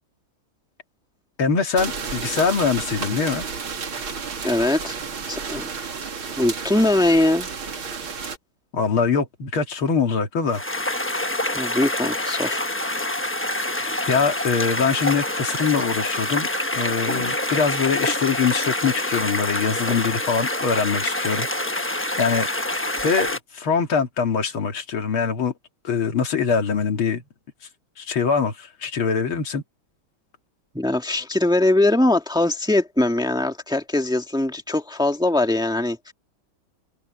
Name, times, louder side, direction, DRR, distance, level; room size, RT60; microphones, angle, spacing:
voice 1, 1.4-3.5 8.7-10.6 13.8-21.5 21.7-21.9 22.2-25.5 25.8-27.2 28.0-29.6, left 5 dB, 85° left, 2.9 m, -23 dB
sound 1, 1.8-8.4, right 5 dB, 80° right, 3.1 m, -32 dB
voice 2, 4.4-5.0 5.3-5.7 6.4-7.5 11.4-12.6 30.7-36.1, left 1 dB, ahead, 1.7 m, -21 dB
sound 2, 10.5-23.4, left 1 dB, 15° left, 0.5 m, -26 dB
omnidirectional pair, 2.2 m